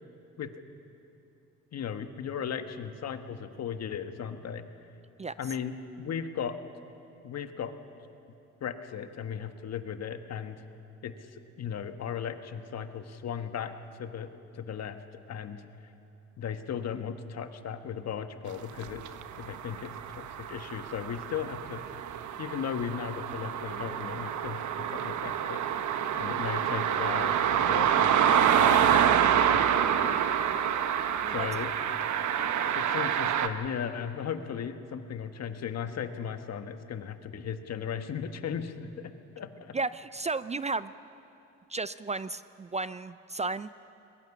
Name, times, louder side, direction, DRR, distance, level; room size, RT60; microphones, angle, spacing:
voice 1, 1.7-4.6 5.4-5.7 6.0-6.6 7.2-7.8 8.6-10.6 11.0-11.3 11.6-13.7 14.0-15.0 15.3-15.6 16.4-19.1 19.4-21.8 22.4-25.6 26.2-29.7 31.3-31.7 32.7-39.7, left 7 dB, 60° left, 8 dB, 1.5 m, -36 dB
sound 1, 18.8-33.5, right 9 dB, 70° right, 1.2 m, -27 dB
voice 2, 39.7-40.9 41.7-43.7, right 3 dB, 25° right, 15 dB, 0.4 m, -33 dB
22.0 x 21.5 x 7.2 m, 2.8 s
cardioid pair, 90°, 30 cm